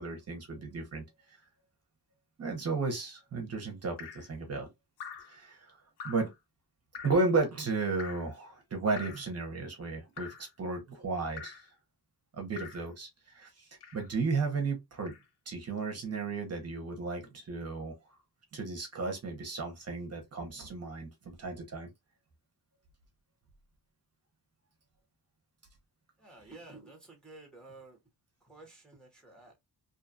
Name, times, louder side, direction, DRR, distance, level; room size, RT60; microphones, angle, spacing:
voice 1, 0.0-1.4 2.4-4.7 5.2-5.8 6.0-6.3 7.0-11.6 12.4-15.1 15.5-17.9 18.5-21.9, right 3 dB, 40° right, 0.6 m, -34 dB
Drip, 4.0-4.3 5.0-5.4 6.0-6.3 6.9-7.3 8.0-8.3 9.0-9.3 10.2-10.5 11.4-11.7 12.6-12.9 13.8-14.1 15.1-15.2, left 6 dB, 85° left, 0.7 m, -45 dB
voice 2, 26.2-28.0 28.4-29.6, right 2 dB, ahead, 0.7 m, -52 dB
2.6 x 2.2 x 2.5 m
wide cardioid pair, 175°, 40 cm